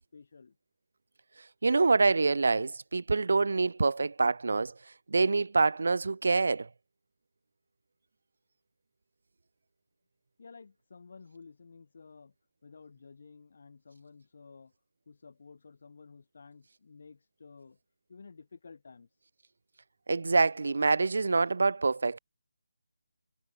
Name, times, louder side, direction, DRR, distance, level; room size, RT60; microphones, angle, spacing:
voice 1, 0.1-0.6 10.4-12.3 12.6-14.7 15.1-17.8 18.1-19.1, left 4 dB, 40° left, 7.5 m, -53 dB
voice 2, 1.6-4.7 5.1-6.7 20.1-22.2, right 3 dB, 55° right, 1.7 m, -26 dB
figure-of-eight pair, 175°, 0 cm